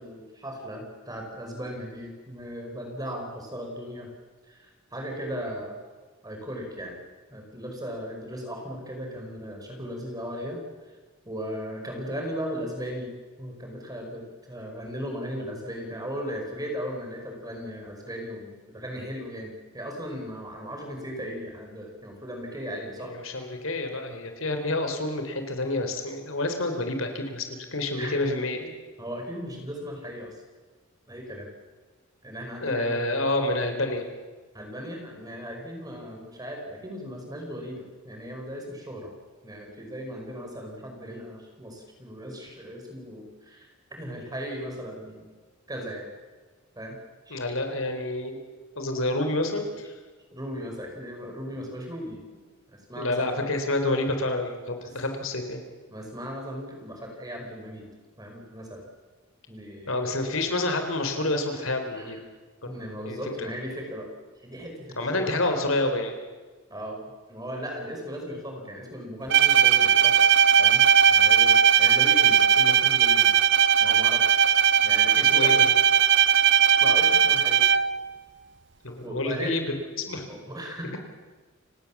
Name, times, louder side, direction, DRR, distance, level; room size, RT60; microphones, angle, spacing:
voice 1, 0.0-4.1 4.5-5.8 6.2-7.0 7.3-10.6 11.2-13.1 13.4-23.1 28.0-28.2 29.0-30.4 31.1-31.5 32.2-33.0 34.5-39.1 39.4-45.3 45.7-46.1 46.8-47.0 47.3-47.6 50.3-52.2 52.7-53.4 54.8-54.9 55.9-57.9 58.2-58.9 59.5-60.0 61.5-62.2 62.7-64.1 64.4-65.4 66.7-67.0 67.3-70.3 70.6-73.4 73.8-74.3 74.8-75.6 76.8-77.6 79.0-79.6 80.2-81.0, equal, 20° right, 1 dB, 5.3 m, -37 dB
voice 2, 23.0-28.7 32.6-34.0 47.3-48.4 48.8-49.9 53.0-55.6 59.9-62.2 62.6-62.8 63.0-63.5 65.0-66.2 75.2-75.7 78.8-80.3, left 2 dB, 70° left, 6 dB, 4.1 m, -28 dB
Bowed string instrument, 69.3-78.1, right 8 dB, 55° right, 0.8 m, -19 dB
30.0 x 18.0 x 7.4 m, 1.4 s
head